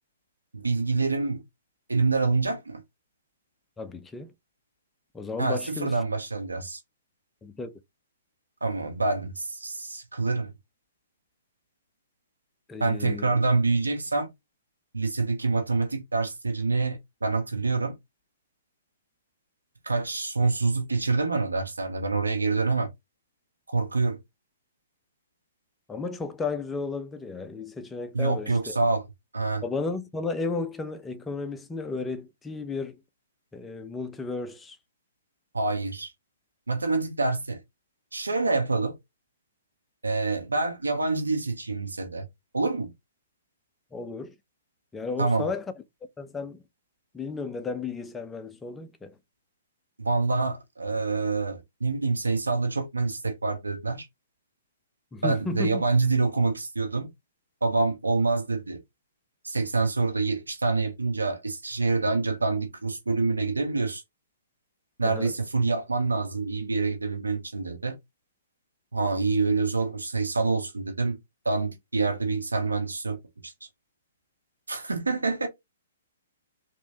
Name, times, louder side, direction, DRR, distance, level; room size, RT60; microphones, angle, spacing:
voice 1, 0.5-1.4 1.9-2.8 5.4-6.8 8.6-10.5 12.8-14.3 14.9-18.0 19.8-22.9 23.7-24.2 28.1-29.0 29.3-29.6 35.5-36.1 36.7-37.6 38.1-39.0 40.0-42.2 42.5-42.9 45.2-45.5 50.0-54.1 55.2-57.1 57.6-58.8 59.4-64.0 65.0-67.9 68.9-71.2 71.4-73.2 73.4-73.5 74.7-75.5, right 3 dB, 90° right, 1.0 m, -26 dB
voice 2, 3.8-4.3 5.1-5.9 7.4-7.7 12.7-13.3 25.9-28.8 29.6-33.0 33.5-34.8 43.9-44.3 44.9-45.7 46.2-46.6 47.1-49.2 55.1-55.8 65.0-65.3, left 4 dB, 10° left, 0.6 m, -33 dB
3.4 x 3.0 x 2.8 m
figure-of-eight pair, 125°, 0 cm